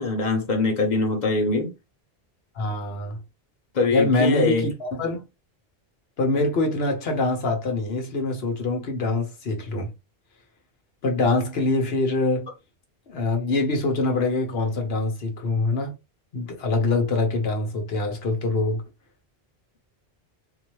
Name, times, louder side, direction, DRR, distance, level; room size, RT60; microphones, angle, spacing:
voice 1, 0.0-1.7 3.7-4.7, left 3 dB, 45° left, 1.3 m, -23 dB
voice 2, 2.6-3.2 3.9-5.2 6.2-9.9 11.0-12.5 13.1-15.9 16.3-18.8, left 2 dB, 70° left, 1.3 m, -24 dB
3.9 x 2.8 x 3.1 m
omnidirectional pair, 1.1 m